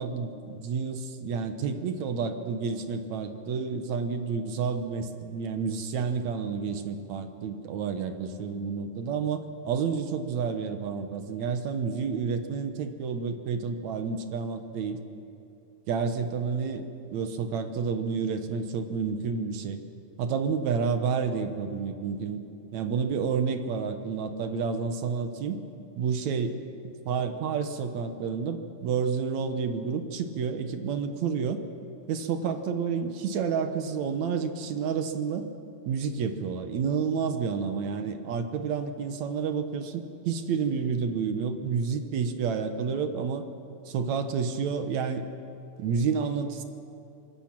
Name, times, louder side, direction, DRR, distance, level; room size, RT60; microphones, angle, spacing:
voice 1, 0.0-15.0 15.9-19.8 20.2-22.4 22.7-25.6 26.0-26.6 27.1-31.6 32.1-35.5 35.9-43.5 43.9-45.3 45.8-46.6, right 6 dB, 65° right, 8 dB, 2.1 m, -30 dB
25.0 x 21.5 x 6.1 m, 2.7 s
omnidirectional pair, 4.1 m